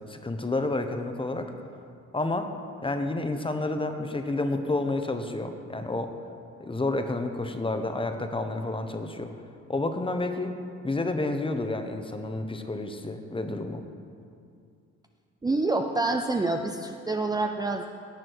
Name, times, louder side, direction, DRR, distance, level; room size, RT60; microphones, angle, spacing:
voice 1, 0.1-1.5 2.1-2.5 2.8-6.1 6.6-9.3 9.7-10.5 10.8-13.8, left 2 dB, 15° left, 6 dB, 1.0 m, -30 dB
voice 2, 15.4-17.9, right 2 dB, 15° right, 4 dB, 0.6 m, -27 dB
17.5 x 7.5 x 4.7 m, 2.4 s
cardioid pair, 90°, 30 cm